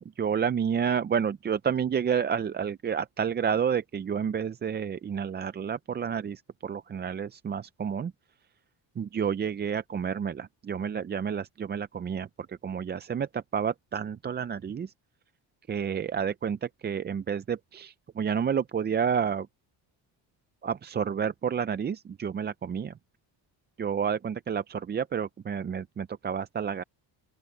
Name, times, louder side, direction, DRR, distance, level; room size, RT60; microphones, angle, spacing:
voice 1, 0.0-8.1 9.0-14.9 15.7-19.5 20.6-22.9 23.8-26.8, right 7 dB, 25° right, 0.4 m, -30 dB
open air
cardioid pair, 125°, 46 cm